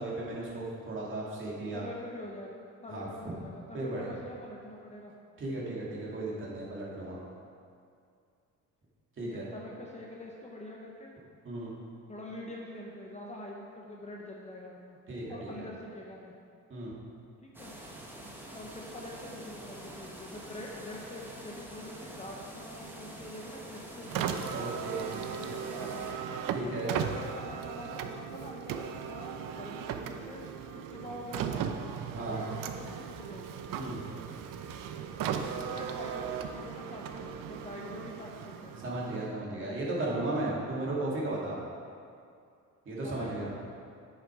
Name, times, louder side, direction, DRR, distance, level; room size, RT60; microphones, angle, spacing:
voice 1, 0.0-1.8 2.9-3.3 3.7-4.1 5.4-7.2 9.2-9.5 11.4-11.7 15.1-15.7 16.7-16.9 24.5-25.1 26.5-26.9 32.1-32.4 33.7-34.0 38.8-41.6 42.9-43.5, right 2 dB, 35° right, -5 dB, 2.2 m, -35 dB
voice 2, 1.7-5.1 9.2-11.1 12.1-15.0 15.3-16.3 17.4-17.7 18.5-24.4 25.3-26.2 26.6-30.4 30.7-31.8 32.2-33.6 35.2-39.0 43.0-43.7, left 1 dB, 20° left, -2 dB, 0.8 m, -45 dB
sound 1, 17.5-26.1, right 1 dB, 5° right, 1.1 m, -46 dB
Car, 24.0-39.4, right 8 dB, 70° right, 0.7 m, -37 dB
10.0 x 6.5 x 4.8 m, 2.4 s
cardioid pair, 145°, 34 cm